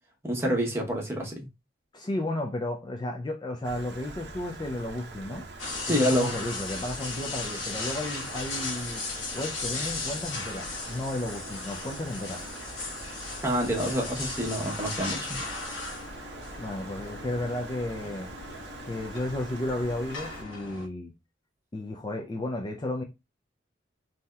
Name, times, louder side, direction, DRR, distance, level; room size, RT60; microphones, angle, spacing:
voice 1, 0.2-1.5 5.8-6.5 13.4-15.4, equal, 15° right, 0.8 m, -27 dB
voice 2, 1.9-5.5 5.9-9.0 9.3-12.4 16.6-18.3 18.9-21.1 21.7-23.0, left 1 dB, 25° left, 0.4 m, -33 dB
Stream, 3.6-20.4, right 2 dB, 60° right, 0.7 m, -44 dB
sound 1, 5.6-20.9, left 3 dB, 85° left, 1.0 m, -37 dB
3.3 x 2.7 x 2.2 m
head